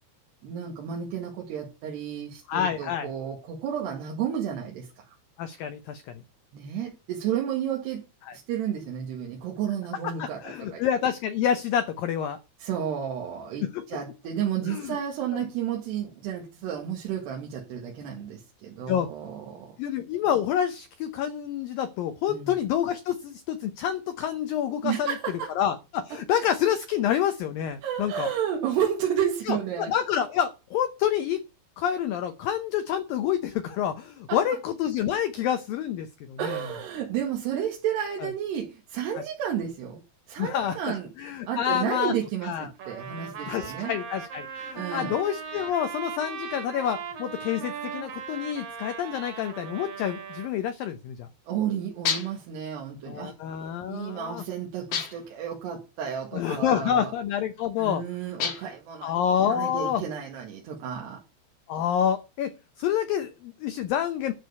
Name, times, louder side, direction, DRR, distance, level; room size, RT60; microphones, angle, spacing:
voice 1, 0.4-4.9 6.5-8.0 8.3-10.4 10.7-10.8 12.6-19.7 22.3-22.5 24.8-25.5 27.8-29.9 34.3-34.4 36.4-40.0 40.3-41.1 41.5-43.9 44.8-45.1 51.5-53.3 53.9-57.1 57.8-59.2 59.5-61.2, right 9 dB, 70° right, 0 dB, 4.0 m, -31 dB
voice 2, 2.5-3.1 5.4-6.0 8.2-8.4 10.2-12.4 13.6-13.8 14.7-15.0 15.3-15.5 18.9-19.1 19.8-25.2 25.6-28.3 29.5-31.4 31.8-36.6 38.2-38.3 39.2-39.3 40.4-40.8 41.2-42.1 42.4-42.7 43.5-51.3 53.0-54.4 56.3-58.0 59.0-60.0 61.7-64.3, left 9 dB, 85° left, 10 dB, 2.0 m, -28 dB
Trumpet, 42.8-50.5, right 6 dB, 55° right, 3.6 m, -38 dB
sound 1, 52.1-52.5 54.9-55.4 58.4-58.9, left 7 dB, 60° left, 1.6 m, -30 dB
12.0 x 4.7 x 8.2 m, 0.30 s
omnidirectional pair, 5.1 m